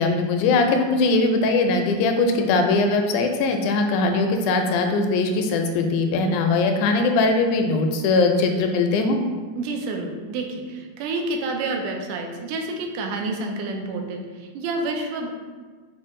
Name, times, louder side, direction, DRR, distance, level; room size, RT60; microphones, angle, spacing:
voice 1, 0.0-9.2, left 3 dB, 85° left, 5 dB, 1.9 m, -20 dB
voice 2, 9.6-15.3, right 2 dB, 90° right, 2 dB, 2.1 m, -29 dB
6.1 x 2.3 x 3.6 m, 1.5 s
omnidirectional pair, 3.5 m